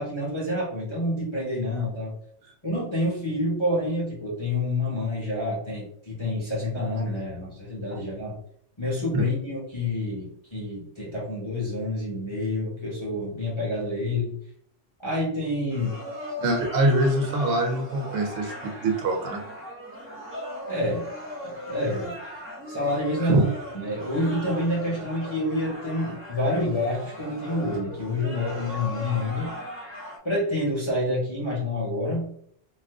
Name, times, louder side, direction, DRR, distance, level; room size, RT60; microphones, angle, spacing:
voice 1, 0.0-2.1 2.6-8.4 8.8-14.4 15.0-16.0 20.7-21.1 21.4-22.2 22.7-23.5 23.7-29.6 30.2-32.3, left 1 dB, 25° left, -6 dB, 0.8 m, -28 dB
sound 1, 15.7-30.2, equal, 15° right, 0.5 m, -38 dB
voice 2, 16.4-19.4 23.3-23.4, right 1 dB, 80° right, 3 dB, 1.0 m, -24 dB
2.5 x 2.4 x 3.5 m, 0.66 s
omnidirectional pair, 1.3 m